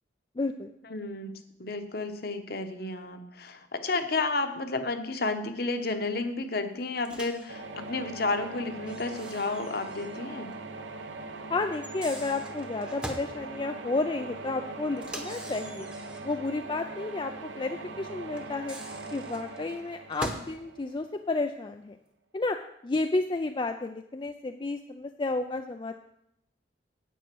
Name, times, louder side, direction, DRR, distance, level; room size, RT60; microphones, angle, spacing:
voice 1, 0.4-0.7 11.5-15.9 16.2-18.8 19.1-22.0 22.3-22.6 22.8-25.9, left 3 dB, 25° left, 7 dB, 0.3 m, -31 dB
voice 2, 0.9-1.3 1.6-10.5, left 3 dB, 50° left, 7 dB, 1.0 m, -31 dB
Microwave oven, 7.0-7.5 8.9-10.2 10.5-10.6 11.7-13.3 15.0-16.4 18.4-20.6, right 1 dB, 5° right, 0.9 m, -42 dB
sound 1, 7.5-21.3, right 3 dB, 75° right, 1.0 m, -41 dB
9.2 x 8.4 x 6.1 m, 0.80 s
head